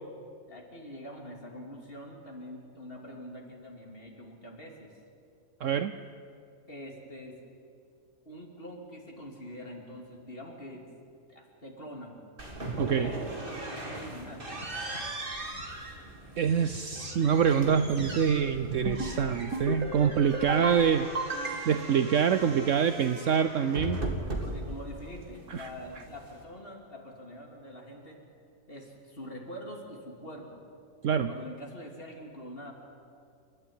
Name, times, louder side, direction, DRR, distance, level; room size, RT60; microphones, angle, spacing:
voice 1, 0.5-5.0 6.7-7.4 8.3-10.9 11.3-12.2 12.8-14.6 24.4-28.2 28.7-30.7 31.1-32.7, equal, 40° left, 1 dB, 3.3 m, -44 dB
voice 2, 5.6-5.9 12.8-13.1 16.4-21.1 21.7-24.0 25.5-25.7 31.0-31.3, right 7 dB, 65° right, 11 dB, 1.0 m, -25 dB
sound 1, 12.4-26.4, right 1 dB, 35° right, 2.5 m, -39 dB
sound 2, 18.7-19.2 19.5-20.0 20.3-20.8 21.1-21.9, right 2 dB, 90° right, 2.7 m, -33 dB
29.0 x 13.5 x 9.5 m, 2.4 s
omnidirectional pair, 1.5 m